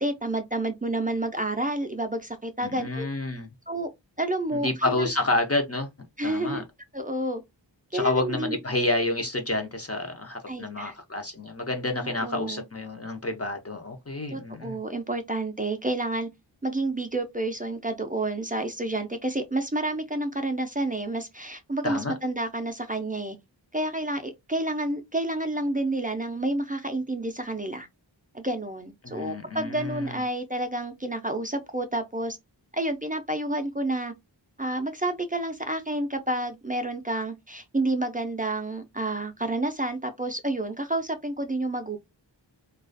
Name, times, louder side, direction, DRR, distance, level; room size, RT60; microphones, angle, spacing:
voice 1, 0.0-3.1 3.7-3.9 4.2-5.1 6.2-6.6 6.9-7.4 7.9-8.6 10.5-10.9 12.0-12.6 14.3-16.3 16.6-23.4 23.7-27.9 28.3-32.4 32.7-34.1 34.6-42.0, right 1 dB, 20° right, 0.4 m, -29 dB
voice 2, 2.6-3.5 4.5-5.9 6.2-6.6 7.9-14.8 21.8-22.1 29.0-30.2, left 2 dB, 35° left, 0.5 m, -29 dB
2.3 x 2.3 x 2.4 m
wide cardioid pair, 50°, 44 cm